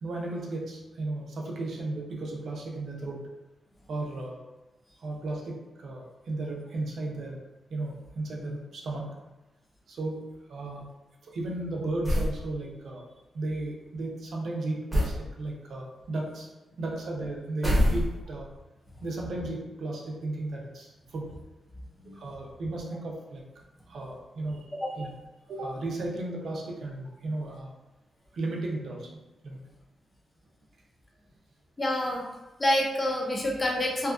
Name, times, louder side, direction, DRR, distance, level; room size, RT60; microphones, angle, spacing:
voice 1, 0.0-3.3 3.9-4.4 5.0-7.4 7.7-9.2 9.9-10.9 11.2-13.0 13.3-16.5 16.8-18.5 19.0-21.4 22.1-23.4 23.9-25.1 25.5-27.7 28.3-29.1 29.4-29.6, right 2 dB, 70° right, -2 dB, 0.5 m, -35 dB
sound 1, 12.0-12.4 14.9-15.2 17.6-18.4, equal, 10° right, 0.8 m, -24 dB
voice 2, 31.8-32.3 32.6-34.1, left 1 dB, 20° left, -2 dB, 0.5 m, -27 dB
2.6 x 2.3 x 2.4 m, 1.1 s
wide cardioid pair, 135°, 0 cm